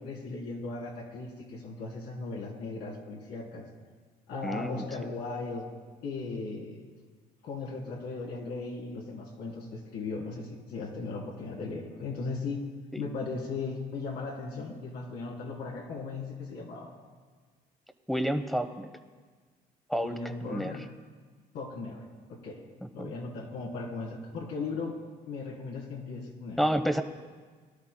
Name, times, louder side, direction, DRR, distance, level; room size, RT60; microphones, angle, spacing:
voice 1, 0.0-3.7 4.3-5.6 6.0-6.8 7.4-12.6 13.0-16.9 20.0-20.8 21.5-22.0 22.3-22.6 22.9-25.0 25.3-26.6, left 3 dB, 75° left, -2 dB, 3.4 m, -37 dB
voice 2, 4.4-4.8 12.9-13.0 18.1-18.9 19.9-20.7 22.8-23.1 26.6-27.0, equal, ahead, 9 dB, 0.9 m, -30 dB
23.5 x 12.5 x 2.2 m, 1.5 s
cardioid pair, 110°, 17 cm